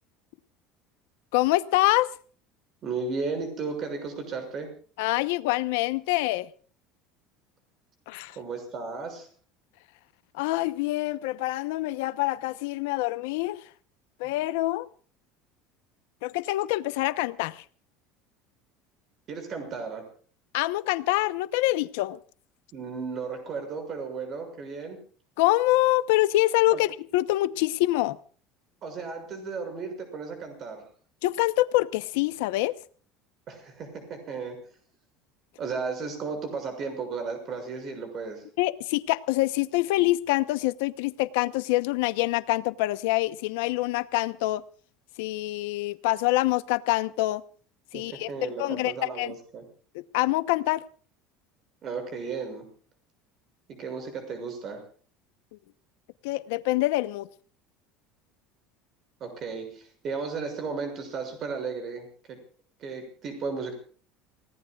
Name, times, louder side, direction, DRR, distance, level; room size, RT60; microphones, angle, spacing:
voice 1, 1.3-2.1 5.0-6.5 8.1-8.4 10.3-13.6 14.2-14.9 16.2-17.6 20.5-22.2 25.4-28.2 31.2-32.7 38.6-44.6 45.2-47.4 47.9-48.3 48.6-48.9 49.2-49.3 49.9-50.8 56.2-57.3, left 18 dB, 85° left, 14 dB, 0.9 m, -25 dB
voice 2, 2.8-4.7 8.3-9.3 19.3-20.0 22.7-25.0 26.7-26.8 28.8-30.8 33.5-34.6 35.6-38.4 47.9-49.6 51.8-52.7 53.7-54.8 59.2-62.4 62.8-63.7, right 4 dB, 35° right, 6 dB, 6.4 m, -34 dB
29.0 x 18.5 x 2.4 m, 0.43 s
cardioid pair, 160°, 0 cm